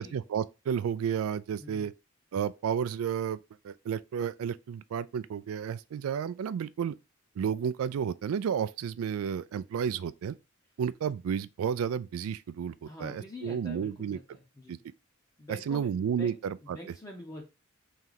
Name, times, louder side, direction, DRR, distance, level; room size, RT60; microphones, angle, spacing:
voice 1, 0.0-1.9 2.3-3.4 3.6-6.9 7.4-10.4 10.8-14.2 14.7-14.8 15.5-16.8, right 7 dB, 85° right, 0.3 m, -32 dB
voice 2, 12.9-14.8 15.4-17.4, left 1 dB, 15° left, 0.7 m, -46 dB
3.2 x 2.8 x 3.8 m
head